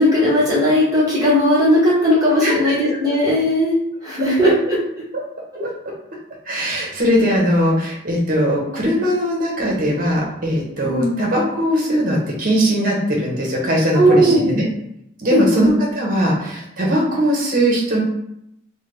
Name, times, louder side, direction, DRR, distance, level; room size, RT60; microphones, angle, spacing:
voice 1, 0.0-3.8 4.0-4.8 10.8-11.2 13.9-14.5 15.3-15.7, equal, 20° right, -8 dB, 0.9 m, -17 dB
voice 2, 6.5-14.6 15.2-18.0, equal, 40° right, -3 dB, 0.9 m, -20 dB
3.3 x 2.2 x 3.2 m, 0.79 s
head